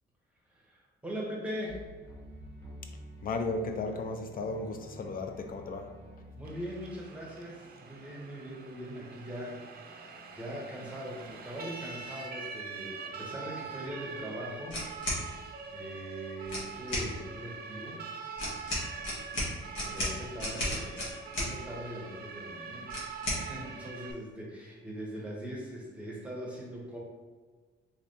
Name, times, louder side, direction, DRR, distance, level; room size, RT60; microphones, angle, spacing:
voice 1, 0.5-1.9 6.4-14.8 15.1-18.0 19.8-23.0 23.3-27.0, equal, 5° right, -4 dB, 0.9 m, -41 dB
sound 1, 1.7-7.4, equal, 15° left, 1.2 m, -49 dB
voice 2, 3.2-5.9, left 3 dB, 45° left, 6 dB, 0.5 m, -35 dB
Siren, 6.4-24.1, right 5 dB, 50° right, 0.5 m, -44 dB
sound 2, 14.7-15.2 16.4-17.1 18.4-21.5 22.9-23.4, left 1 dB, 70° left, 1.4 m, -33 dB
3.6 x 3.2 x 2.7 m, 1.5 s
cardioid pair, 105°, 20 cm